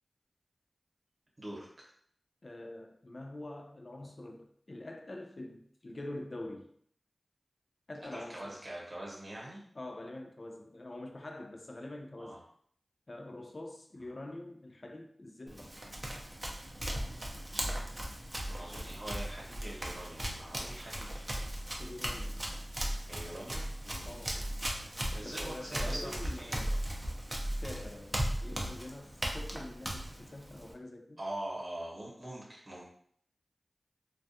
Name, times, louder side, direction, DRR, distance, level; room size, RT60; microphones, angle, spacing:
voice 1, 1.4-1.9 8.1-9.6 12.2-12.4 18.3-21.3 23.1-24.2 25.1-26.7 31.2-32.9, right 1 dB, 55° right, 1.0 m, -43 dB
voice 2, 2.4-6.7 7.9-8.6 9.7-12.4 13.1-15.8 21.8-22.4 24.1-24.4 25.2-26.7 27.5-31.2, left 1 dB, 55° left, 0.3 m, -45 dB
Run, 15.5-30.7, right 1 dB, 25° right, 0.5 m, -37 dB
2.3 x 2.2 x 2.7 m
cardioid pair, 45°, 0 cm